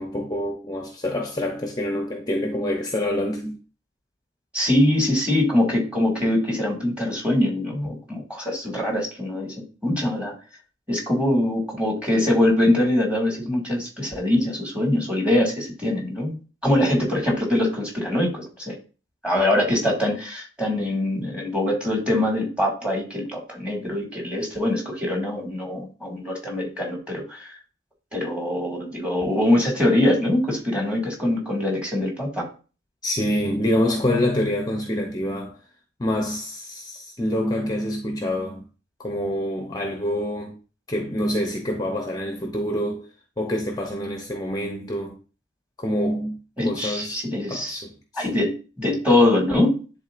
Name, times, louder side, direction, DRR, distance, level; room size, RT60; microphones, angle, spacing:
voice 1, 0.0-3.6 33.0-35.6 36.0-38.7 39.0-40.6 40.9-43.1 43.4-45.2 45.8-46.4 46.6-47.2 47.5-48.4, left 1 dB, 20° left, 0.8 m, -26 dB
voice 2, 4.5-10.3 10.9-16.4 16.6-18.7 19.2-27.6 28.1-32.5 46.6-47.8 48.1-49.8, left 1 dB, 5° right, 2.0 m, -23 dB
11.0 x 3.8 x 2.5 m
head